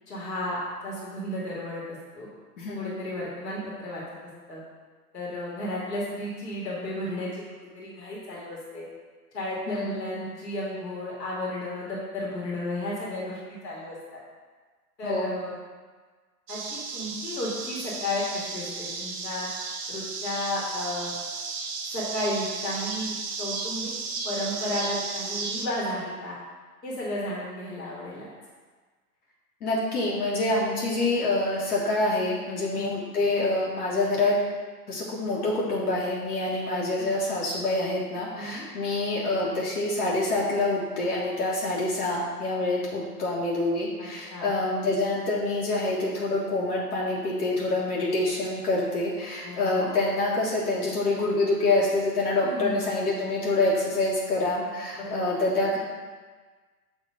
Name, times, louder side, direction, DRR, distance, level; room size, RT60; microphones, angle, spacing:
voice 1, 0.1-2.3 2.7-4.0 4.5-4.6 5.1-7.4 7.7-8.9 9.3-14.2 15.0-15.6 16.5-19.5 19.9-21.1 21.9-23.9 24.2-26.4 26.8-28.3 32.7-33.1 37.0-37.1 38.4-38.7 44.0-44.5 49.4-49.9 52.4-52.9 55.0-55.4, left 1 dB, 85° left, -5 dB, 1.7 m, -33 dB
voice 2, 9.7-10.0 15.0-15.3 29.6-34.4 34.9-55.8, left 2 dB, 65° left, -6 dB, 1.5 m, -26 dB
sound 1, 16.5-25.7, right 4 dB, 40° right, 1.0 m, -34 dB
6.7 x 2.9 x 4.9 m, 1.4 s
hypercardioid pair, 105°, 48 cm